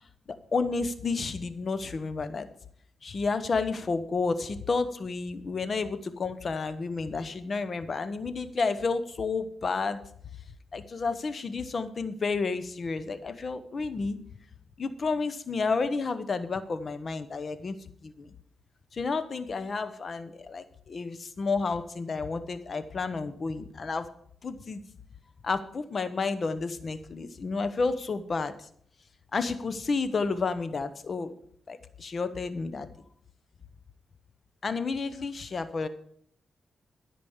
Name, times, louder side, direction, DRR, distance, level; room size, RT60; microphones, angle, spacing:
voice 1, 0.5-2.5 3.0-10.0 10.7-14.2 14.8-17.8 18.0-18.3 18.9-24.1 24.4-24.8 25.4-28.7 29.3-31.3 31.7-32.9 34.6-35.9, left 4 dB, 50° left, 12 dB, 1.0 m, -31 dB
13.0 x 5.2 x 7.2 m, 0.62 s
cardioid pair, 75°, 0 cm